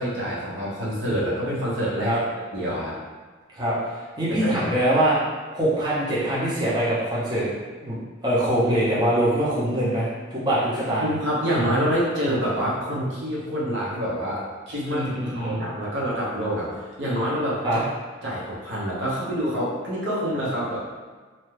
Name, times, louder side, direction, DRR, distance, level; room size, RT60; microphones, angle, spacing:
voice 1, 0.0-2.2 2.5-2.9 4.3-4.6 11.0-16.7 17.0-17.8 18.2-20.8, equal, 75° right, -6 dB, 0.8 m, -26 dB
voice 2, 3.5-5.2 5.5-7.4 7.8-7.9 8.2-11.0 14.9-15.6 17.6-17.8, right 1 dB, 20° right, -10 dB, 0.8 m, -23 dB
2.7 x 2.2 x 3.2 m, 1.4 s
head